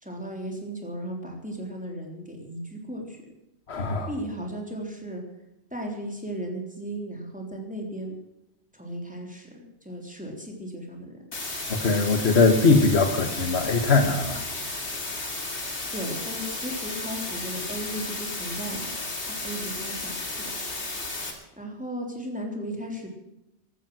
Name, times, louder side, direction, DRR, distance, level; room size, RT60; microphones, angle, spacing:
voice 1, 0.0-3.2 4.1-5.2 5.7-8.1 8.7-11.2 15.9-18.9 19.4-20.5 21.6-23.1, right 1 dB, 5° right, 1 dB, 3.4 m, -36 dB
voice 2, 3.7-4.1 11.7-14.4, left 3 dB, 70° left, 6 dB, 1.7 m, -21 dB
sound 1, 11.3-21.3, left 2 dB, 90° left, 3.0 m, -33 dB
16.0 x 12.5 x 6.3 m, 0.88 s
omnidirectional pair, 1.1 m